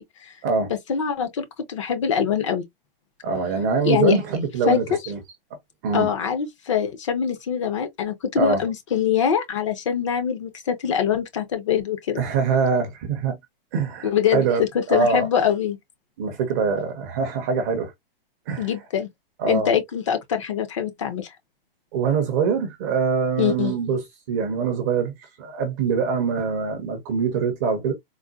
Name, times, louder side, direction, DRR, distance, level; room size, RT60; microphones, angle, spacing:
voice 1, 0.7-2.6 3.8-4.2 4.7-4.8 5.9-12.2 14.0-15.8 18.6-19.1 19.5-21.3 23.4-23.7, left 8 dB, 35° left, 0.5 m, -23 dB
voice 2, 3.2-5.2 5.8-6.1 8.4-8.6 12.2-13.4 13.7-14.6 14.9-15.3 16.2-17.9 18.5-18.7 19.4-19.8 21.9-27.9, right 5 dB, 20° right, 0.5 m, -24 dB
3.9 x 2.1 x 2.3 m
hypercardioid pair, 165°, 30 cm